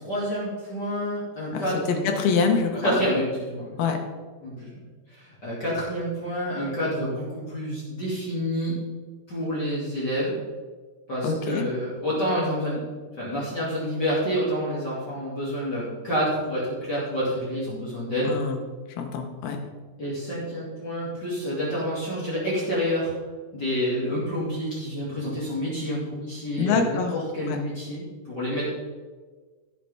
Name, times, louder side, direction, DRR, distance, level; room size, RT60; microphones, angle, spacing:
voice 1, 0.0-2.2 2.8-3.8 4.4-4.8 5.1-8.8 9.3-10.3 11.1-12.8 13.2-18.3 20.0-23.1 23.5-28.7, equal, 30° left, -8 dB, 2.8 m, -28 dB
voice 2, 1.5-3.0 3.8-4.0 11.2-11.7 18.3-18.6 18.9-19.6 26.6-27.1 27.5-27.6, left 5 dB, 85° left, 3 dB, 3.1 m, -25 dB
16.5 x 6.6 x 3.5 m, 1.4 s
omnidirectional pair, 4.2 m